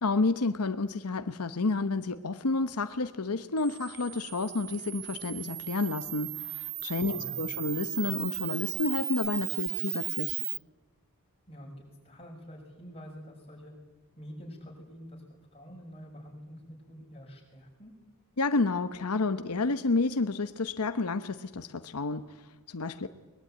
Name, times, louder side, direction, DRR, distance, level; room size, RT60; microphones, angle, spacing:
voice 1, 0.0-10.4 18.4-23.1, left 3 dB, 85° left, 10 dB, 1.0 m, -30 dB
Camera, 3.6-10.6, right 16 dB, 45° right, 0.9 m, -36 dB
voice 2, 7.1-7.4 11.5-13.7 14.2-15.2 15.5-17.9, equal, 25° left, 0 dB, 6.8 m, -47 dB
22.5 x 21.5 x 9.3 m, 1.1 s
head